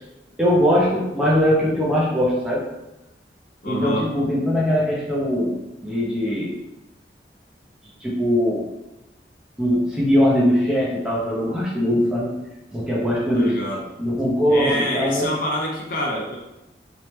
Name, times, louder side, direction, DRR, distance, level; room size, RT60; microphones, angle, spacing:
voice 1, 0.4-2.6 3.7-6.5 8.0-8.7 9.6-12.3 12.7-13.6 14.0-15.3, equal, 5° right, -6 dB, 0.8 m, -21 dB
voice 2, 3.6-4.0 13.3-13.8 14.5-16.4, equal, 50° left, -1 dB, 0.7 m, -26 dB
3.7 x 2.9 x 3.1 m, 0.95 s
head